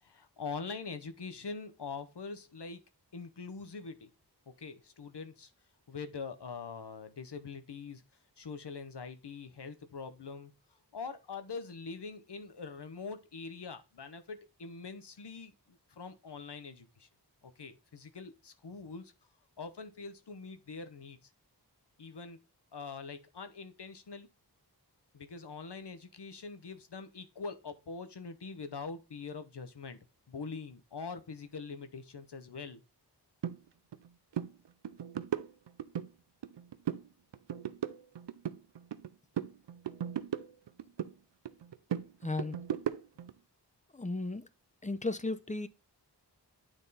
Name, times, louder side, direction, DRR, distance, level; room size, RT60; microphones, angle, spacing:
voice 1, 0.0-2.8 3.1-4.1 4.5-5.5 5.9-8.0 8.4-10.5 10.9-17.1 17.4-19.1 19.6-21.3 22.0-22.4 22.7-24.3 25.1-30.0 30.3-32.8, left 4 dB, 70° left, 0.9 m, -43 dB
sound 1, 33.4-33.6 33.9-34.1 34.3-34.5 34.8-36.1 36.4-37.1 37.3-39.1 39.4-41.1 41.5-43.3, right 9 dB, 85° right, 0.5 m, -37 dB
voice 2, 42.2-42.6 43.9-44.5 44.8-45.7, left 2 dB, 20° left, 0.6 m, -35 dB
9.0 x 3.6 x 4.0 m
wide cardioid pair, 45°, 42 cm